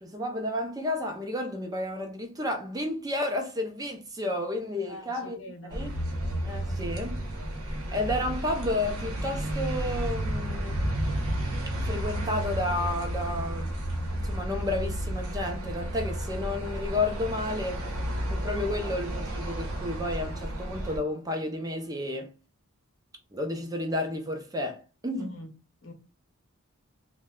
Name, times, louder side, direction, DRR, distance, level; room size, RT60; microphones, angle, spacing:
voice 1, 0.0-5.4 5.7-6.0 6.4-7.2 7.9-10.9 11.8-13.7 14.1-17.9 18.3-22.3 23.3-25.4, left 2 dB, 15° right, 0.5 m, -31 dB
voice 2, 4.9-5.8 25.2-25.5 25.8-25.9, left 1 dB, 60° left, 0.9 m, -43 dB
sound 1, 5.7-21.0, right 1 dB, 90° right, 0.9 m, -32 dB
3.1 x 2.2 x 3.6 m
head